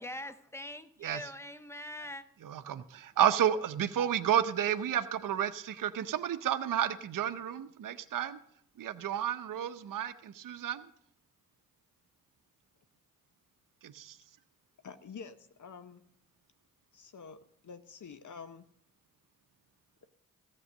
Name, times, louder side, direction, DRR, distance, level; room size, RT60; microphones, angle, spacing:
voice 1, 0.0-2.2, left 1 dB, 5° left, 1.0 m, -43 dB
voice 2, 1.0-1.3 2.4-8.4 8.8-10.9 13.8-14.2, right 10 dB, 60° right, 0.7 m, -31 dB
voice 3, 14.8-16.0 16.9-18.7, left 5 dB, 55° left, 1.0 m, -48 dB
14.0 x 7.7 x 6.5 m
supercardioid pair, 40°, 36 cm